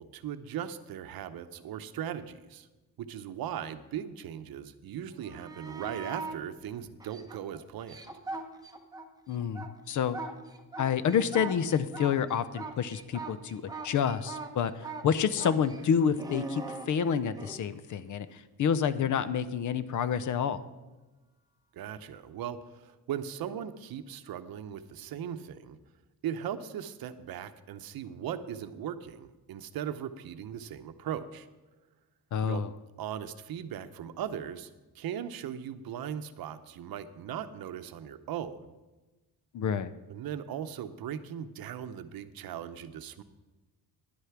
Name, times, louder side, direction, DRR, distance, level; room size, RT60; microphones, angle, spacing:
voice 1, 0.0-2.7 3.0-8.0 21.7-25.8 26.2-31.5 32.4-32.6 33.0-34.7 34.9-38.6 40.1-43.2, right 9 dB, 70° right, 11 dB, 0.7 m, -38 dB
sound 1, 5.1-6.4 7.0-9.1 9.4-17.6 20.4-20.5, right 3 dB, 10° right, 0.8 m, -41 dB
voice 2, 9.3-10.2 10.8-14.7 15.0-20.6 32.3-32.7 39.5-39.9, left 7 dB, 55° left, 15 dB, 0.6 m, -28 dB
10.5 x 8.1 x 5.9 m, 1.1 s
cardioid pair, 145°, 37 cm